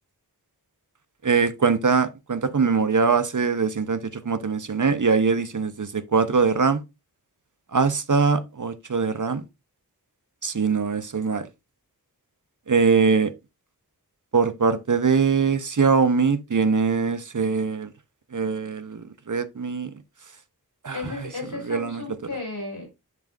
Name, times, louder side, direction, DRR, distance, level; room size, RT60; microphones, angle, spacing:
voice 1, 1.2-6.8 7.7-9.4 10.4-11.5 12.7-13.3 14.3-17.9 18.3-19.9 20.8-21.0 21.7-22.0, right 5 dB, 55° right, 0.8 m, -22 dB
voice 2, 20.9-22.9, left 3 dB, 80° left, 3.9 m, -34 dB
11.0 x 3.6 x 2.5 m
wide cardioid pair, 40°, 38 cm